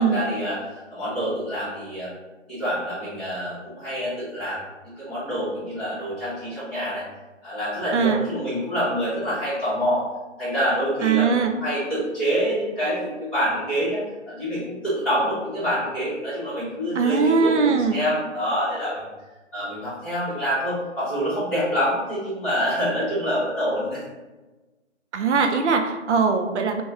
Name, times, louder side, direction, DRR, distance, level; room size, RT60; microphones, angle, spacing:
voice 1, 0.0-2.1 2.5-7.0 7.4-10.0 10.4-19.0 19.5-24.0, equal, 5° left, -14 dB, 0.9 m, -26 dB
voice 2, 7.9-8.2 11.0-11.5 16.9-18.0 25.1-26.8, right 5 dB, 70° right, 5 dB, 0.6 m, -21 dB
3.0 x 2.2 x 3.5 m, 1.2 s
figure-of-eight pair, 145°, 36 cm